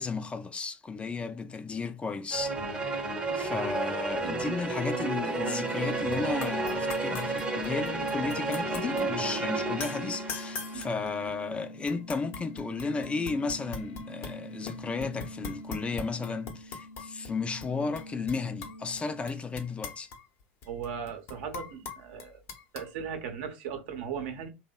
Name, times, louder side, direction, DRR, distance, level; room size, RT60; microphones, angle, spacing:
voice 1, 0.0-2.6 3.4-20.1, left 4 dB, 20° left, 0.3 m, -34 dB
sound 1, 2.3-10.9, right 3 dB, 15° right, 0.7 m, -32 dB
sound 2, 5.5-19.3, left 1 dB, 85° left, 0.6 m, -43 dB
sound 3, 6.1-6.2 6.4-9.1 9.8-11.5 11.9-14.4 14.7-17.3 17.6-17.7 18.0-19.0 19.3-22.9, left 5 dB, 50° left, 0.7 m, -41 dB
voice 2, 20.7-22.4 22.7-24.5, right 7 dB, 70° right, 0.7 m, -37 dB
2.7 x 2.1 x 2.2 m
hypercardioid pair, 85°, 6 cm